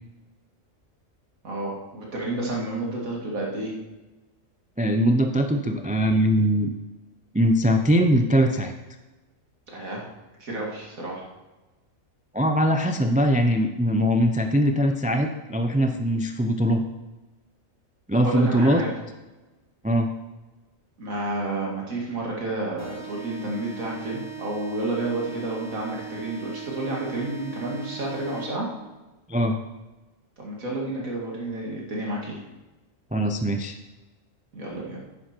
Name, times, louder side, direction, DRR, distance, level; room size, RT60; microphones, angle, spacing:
voice 1, 1.4-3.7 9.7-10.0 10.4-11.2 18.1-18.9 21.0-28.7 30.4-32.4 34.5-35.0, right 2 dB, 90° right, -2 dB, 2.9 m, -30 dB
voice 2, 4.8-6.7 7.3-8.7 12.3-16.8 18.1-18.8 19.8-20.1 29.3-29.6 33.1-33.7, equal, 10° right, 6 dB, 0.4 m, -21 dB
sound 1, 22.8-28.8, right 6 dB, 80° left, 2.4 m, -39 dB
10.5 x 9.5 x 4.5 m, 1.1 s
omnidirectional pair, 1.4 m